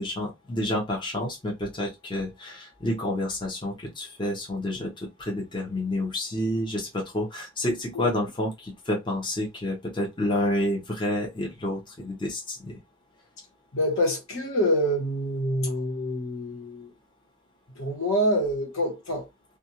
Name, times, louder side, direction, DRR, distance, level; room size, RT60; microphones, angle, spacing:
voice 1, 0.0-12.8, left 1 dB, 25° left, 0.8 m, -29 dB
voice 2, 13.7-16.9 17.8-19.3, equal, 90° left, 1.2 m, -26 dB
2.5 x 2.4 x 2.7 m
head